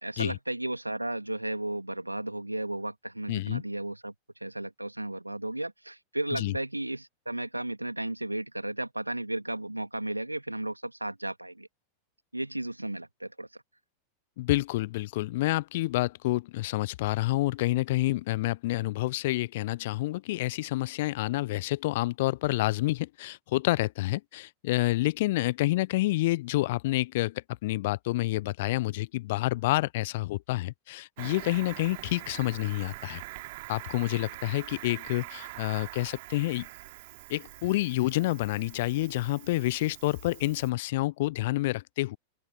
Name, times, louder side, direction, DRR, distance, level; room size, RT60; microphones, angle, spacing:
voice 1, 0.0-4.1 4.4-11.7 12.3-13.5, right 1 dB, 85° right, 2.1 m, -34 dB
voice 2, 3.3-3.6 6.3-6.6 14.4-33.2 33.7-36.7 37.3-42.2, left 18 dB, 50° left, 0.5 m, -28 dB
Cricket, 31.2-40.7, right 21 dB, 50° right, 2.7 m, -44 dB
open air
figure-of-eight pair, 90°, 0 cm